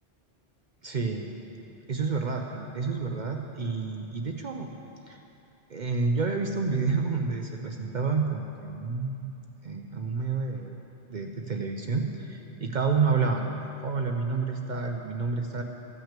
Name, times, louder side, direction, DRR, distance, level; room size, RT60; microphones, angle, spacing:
voice 1, 0.8-1.3 1.9-4.7 5.1-5.2 5.7-9.2 9.6-10.7 11.1-13.6 13.8-15.6, right 4 dB, 50° right, 3 dB, 0.7 m, -29 dB
15.0 x 5.9 x 7.4 m, 2.9 s
omnidirectional pair, 1.2 m